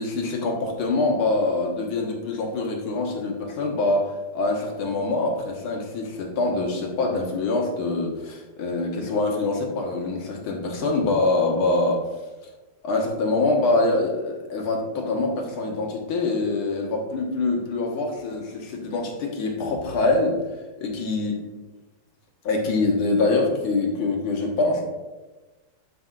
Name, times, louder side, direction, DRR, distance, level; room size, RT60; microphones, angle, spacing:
voice 1, 0.0-12.0 12.8-20.4 20.8-21.3 22.4-24.8, left 2 dB, 75° left, 0 dB, 2.2 m, -24 dB
12.0 x 5.5 x 2.5 m, 1.2 s
omnidirectional pair, 2.4 m